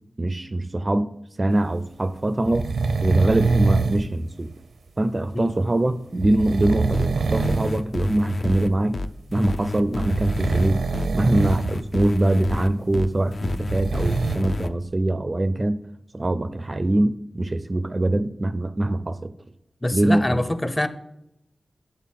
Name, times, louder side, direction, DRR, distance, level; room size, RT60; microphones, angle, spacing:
voice 1, 0.2-2.7 3.0-4.5 5.0-9.0 9.3-10.9 11.1-15.8 16.1-19.3 19.9-20.4, right 1 dB, 30° right, 0.4 m, -23 dB
sound 1, 2.4-4.1 6.2-7.8 8.1-8.3 10.0-11.7 12.0-12.1 13.4-14.4, right 4 dB, 90° right, 0.6 m, -24 dB
sound 2, 6.9-14.7, left 3 dB, 60° left, 0.5 m, -30 dB
voice 2, 19.8-20.9, left 1 dB, 15° left, 0.6 m, -24 dB
10.0 x 4.3 x 7.4 m
wide cardioid pair, 120°, 0 cm